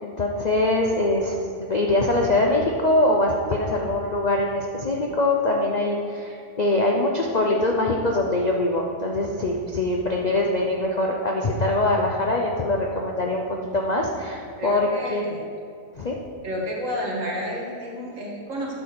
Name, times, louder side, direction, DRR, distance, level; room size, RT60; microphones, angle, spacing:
voice 1, 0.0-15.3 16.0-16.2, left 2 dB, 80° left, 0 dB, 0.3 m, -23 dB
voice 2, 14.6-15.4 16.4-18.7, equal, 55° right, -3 dB, 2.0 m, -30 dB
9.8 x 4.3 x 6.7 m, 2.4 s
omnidirectional pair, 1.7 m